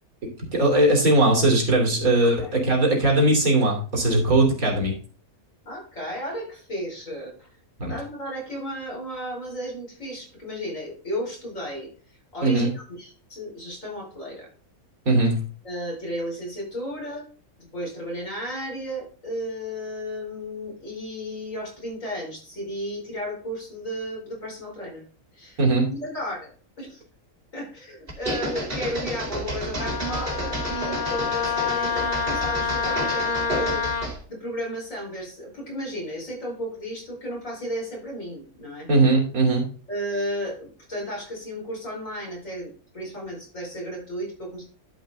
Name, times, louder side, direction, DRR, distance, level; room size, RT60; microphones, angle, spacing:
voice 1, 0.5-4.9 7.8-7.9 12.4-12.7 15.0-15.4 25.6-25.9 38.9-39.6, right 2 dB, 65° right, 0 dB, 3.2 m, -19 dB
voice 2, 2.2-2.5 5.6-7.5 7.9-14.5 15.6-17.3 17.6-25.0 25.3-25.6 25.9-27.0 27.5-38.9 39.9-44.6, equal, 55° left, -3 dB, 5.3 m, -34 dB
sound 1, 28.1-34.2, right 1 dB, 35° right, 2.7 m, -31 dB
Wind instrument woodwind instrument, 29.8-34.1, left 6 dB, 40° left, 0.9 m, -27 dB
11.5 x 5.3 x 3.7 m, 0.42 s
omnidirectional pair, 1.6 m